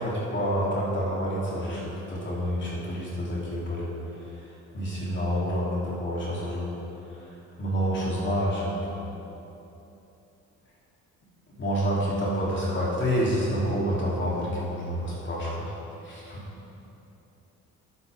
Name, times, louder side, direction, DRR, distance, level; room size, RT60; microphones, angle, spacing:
voice 1, 0.0-3.9 4.7-6.7 7.6-9.0 11.6-15.7 16.0-16.4, equal, 40° left, -6 dB, 3.3 m, -28 dB
19.5 x 9.2 x 3.6 m, 3.0 s
cardioid pair, 90°, 30 cm